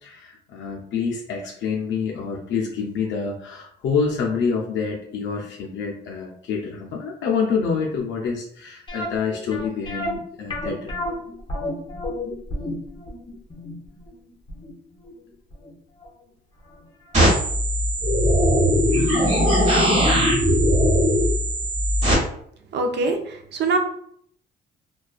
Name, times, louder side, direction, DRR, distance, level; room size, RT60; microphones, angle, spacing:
voice 1, 0.0-11.2, left 5 dB, 70° left, -1 dB, 0.4 m, -27 dB
sound 1, 8.9-15.7 16.0-16.1 16.7-16.8 17.1-17.2, left 1 dB, 25° left, 0.7 m, -31 dB
sound 2, 17.1-22.1, equal, 35° right, 1.1 m, -19 dB
voice 2, 22.7-23.8, right 3 dB, 60° right, 4 dB, 0.5 m, -23 dB
2.3 x 2.2 x 2.4 m, 0.65 s
cardioid pair, 90°, 20 cm